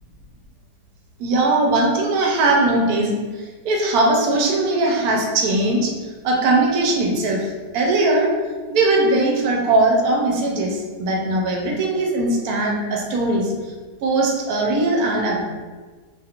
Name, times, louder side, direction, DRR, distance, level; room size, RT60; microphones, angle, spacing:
voice 1, 1.2-5.9 6.2-8.3 8.7-13.5 14.0-15.4, right 2 dB, 70° right, -1 dB, 1.0 m, -20 dB
2.9 x 2.4 x 2.8 m, 1.4 s
omnidirectional pair, 1.8 m